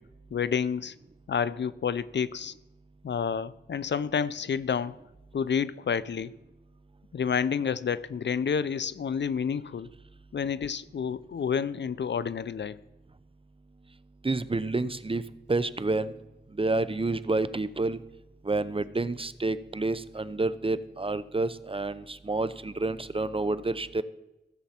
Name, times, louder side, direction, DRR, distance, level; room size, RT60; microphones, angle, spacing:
voice 1, 0.3-0.9 1.3-2.5 3.0-4.9 5.3-6.4 7.1-9.9 10.3-12.8, left 7 dB, 75° left, 17 dB, 0.4 m, -29 dB
voice 2, 14.2-15.2 15.5-16.1 16.5-18.0 18.4-24.0, right 2 dB, 30° right, 15 dB, 0.6 m, -29 dB
16.0 x 7.1 x 4.3 m, 0.98 s
wide cardioid pair, 45°, 19 cm